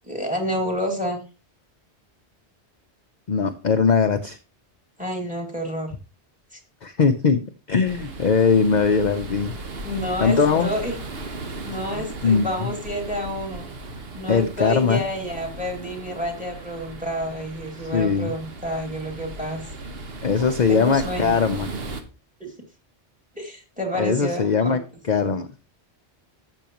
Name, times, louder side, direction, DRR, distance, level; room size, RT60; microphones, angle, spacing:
voice 1, 0.0-1.2 5.0-5.9 6.5-6.6 9.8-11.0 11.6-13.7 14.1-19.6 20.7-21.4 22.4-22.5 23.4-24.8, equal, 5° right, 3 dB, 2.4 m, -29 dB
voice 2, 3.3-4.4 6.8-7.4 7.7-9.5 10.2-10.7 11.9-12.7 14.3-15.0 17.9-18.3 20.2-21.7 24.0-24.8 25.1-25.5, left 5 dB, 45° left, 7 dB, 0.7 m, -20 dB
sound 1, 7.8-22.0, right 3 dB, 60° right, 1.4 m, -36 dB
12.0 x 7.8 x 3.0 m, 0.33 s
omnidirectional pair, 1.1 m